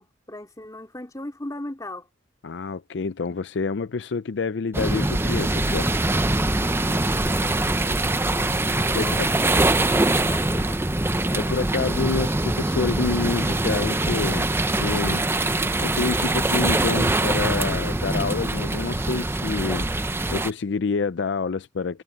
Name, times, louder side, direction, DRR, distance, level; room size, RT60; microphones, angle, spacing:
voice 1, 0.0-2.1 8.9-10.9, left 1 dB, 20° left, 3.2 m, -38 dB
voice 2, 2.4-5.9 8.9-9.3 11.3-15.2 15.8-19.9 20.3-22.0, left 4 dB, 65° left, 0.5 m, -27 dB
sound 1, 4.7-20.5, right 2 dB, 15° right, 0.6 m, -23 dB
head